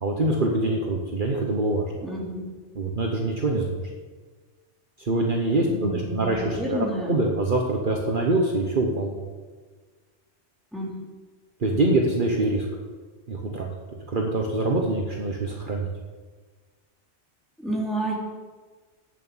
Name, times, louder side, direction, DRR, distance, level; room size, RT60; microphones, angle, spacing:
voice 1, 0.0-1.9 2.8-3.8 5.0-9.1 11.6-12.7 13.3-13.7 14.1-15.9, right 2 dB, 50° right, 0 dB, 1.2 m, -24 dB
voice 2, 2.0-2.5 5.6-7.2 10.7-10.9 11.7-12.0 17.6-18.2, equal, ahead, -5 dB, 3.0 m, -30 dB
8.4 x 7.5 x 8.9 m, 1.4 s
omnidirectional pair, 1.1 m